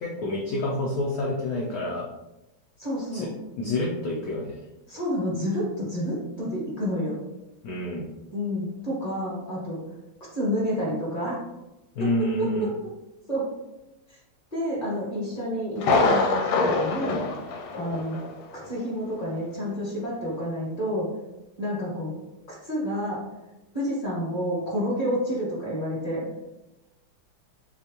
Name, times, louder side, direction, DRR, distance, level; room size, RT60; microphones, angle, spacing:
voice 1, 0.0-2.1 3.1-3.3 3.6-4.6 7.6-8.1 11.9-12.7, left 1 dB, 65° left, -3 dB, 0.9 m, -28 dB
voice 2, 2.8-3.3 4.9-7.2 8.3-9.8 10.3-11.4 12.6-12.7 13.3-13.5 14.5-17.2 17.7-18.2 18.6-21.1 21.6-22.1 22.6-23.2 23.7-26.3, equal, 20° left, -7 dB, 1.5 m, -29 dB
Thunder, 15.8-18.4 18.6-18.7 19.3-19.4, left 3 dB, 90° left, 1.5 m, -24 dB
6.8 x 2.4 x 2.9 m, 0.96 s
omnidirectional pair, 2.3 m